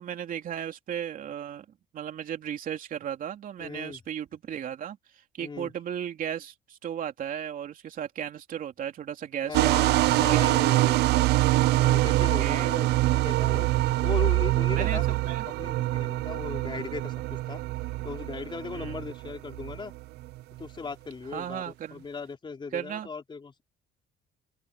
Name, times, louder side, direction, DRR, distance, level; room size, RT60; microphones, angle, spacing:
voice 1, 0.0-1.6 1.9-9.8 10.2-10.4 10.7-11.2 12.1-12.8 14.7-15.5 18.7-18.9 21.3-22.0 22.7-23.1, right 9 dB, 55° right, 3.1 m, -35 dB
voice 2, 3.6-4.0 5.4-5.7 9.4-11.1 11.8-13.7 14.0-17.6 18.0-19.9 20.6-23.6, left 4 dB, 30° left, 4.2 m, -38 dB
sound 1, 9.5-20.4, right 18 dB, 80° right, 0.5 m, -25 dB
open air
cardioid pair, 110°, 17 cm